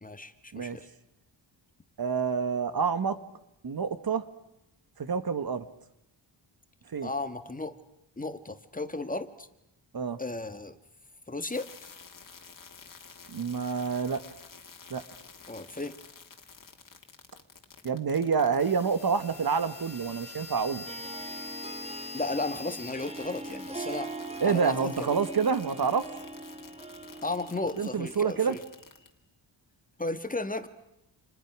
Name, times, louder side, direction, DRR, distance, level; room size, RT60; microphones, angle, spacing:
voice 1, 0.0-0.9 7.0-7.7 8.2-9.5 10.2-10.8 11.3-11.7 15.5-15.9 22.1-24.1 24.4-25.1 27.2-28.6 30.0-30.7, left 2 dB, 20° left, 9 dB, 1.7 m, -34 dB
voice 2, 2.0-3.2 3.6-4.2 5.0-5.7 6.9-7.1 9.9-10.2 13.3-14.2 14.9-15.0 17.8-20.8 24.4-26.1 27.8-28.6, right 6 dB, 50° right, 12 dB, 1.6 m, -28 dB
sound 1, 11.5-29.1, left 4 dB, 45° left, 3.2 m, -47 dB
Harp, 20.8-28.5, right 2 dB, 15° right, 1.4 m, -41 dB
30.0 x 28.5 x 6.2 m, 0.86 s
wide cardioid pair, 130°, 46 cm